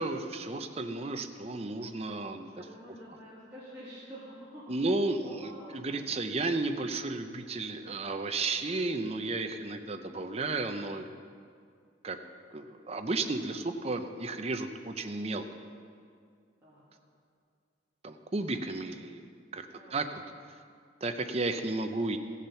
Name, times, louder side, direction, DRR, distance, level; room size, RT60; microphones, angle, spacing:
voice 1, 0.0-2.6 4.7-11.1 12.0-12.2 12.5-15.4 18.0-19.7 19.9-20.2 21.0-22.2, right 3 dB, 30° right, 7 dB, 0.6 m, -33 dB
voice 2, 2.3-4.9 5.2-5.9 16.6-16.8 19.7-20.3, equal, 15° right, -12 dB, 2.2 m, -48 dB
15.0 x 7.3 x 5.7 m, 2.2 s
head